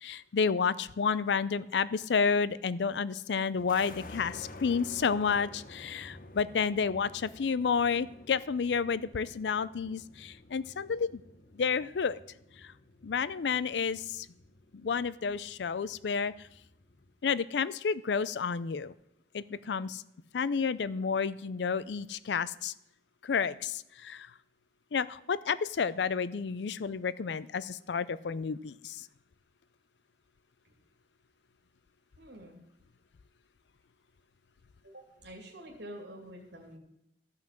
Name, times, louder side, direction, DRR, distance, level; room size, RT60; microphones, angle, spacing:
voice 1, 0.0-11.2 11.6-12.2 12.6-12.7 13.0-14.3 14.7-16.3 17.2-18.9 19.3-20.0 20.3-22.7 23.2-24.3 24.9-29.1, left 5 dB, 80° left, 17 dB, 0.5 m, -30 dB
sound 1, 3.6-17.1, left 2 dB, 50° left, 0.9 m, -51 dB
voice 2, 32.2-32.6 34.8-36.8, equal, 80° right, 0 dB, 2.5 m, -47 dB
14.0 x 5.8 x 7.4 m, 0.83 s
head